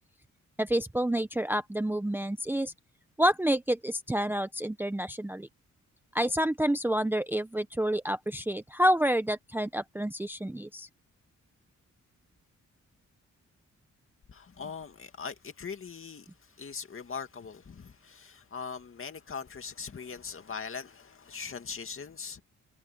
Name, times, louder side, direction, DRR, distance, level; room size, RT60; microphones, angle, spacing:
voice 1, 0.6-2.7 3.2-5.5 6.1-10.9, equal, 5° right, 0.7 m, -28 dB
voice 2, 14.3-22.4, left 5 dB, 45° left, 2.3 m, -41 dB
wide cardioid pair, 130°, 31 cm